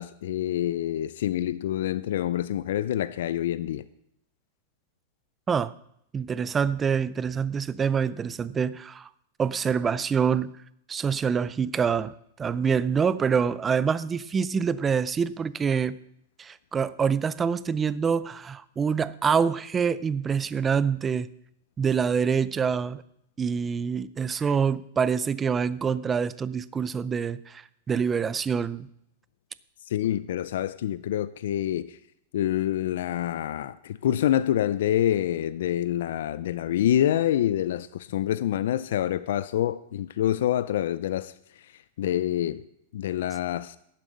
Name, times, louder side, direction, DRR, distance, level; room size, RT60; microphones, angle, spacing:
voice 1, 0.0-3.9 29.9-32.0 32.3-41.3 42.0-42.6 42.9-43.7, left 11 dB, 70° left, 0.5 m, -26 dB
voice 2, 6.1-9.1 9.4-10.5 10.9-12.1 12.4-16.0 16.4-21.3 21.8-23.0 23.4-27.6 27.9-28.9, right 6 dB, 15° right, 0.4 m, -26 dB
11.5 x 7.4 x 6.8 m
supercardioid pair, 150°, 0 cm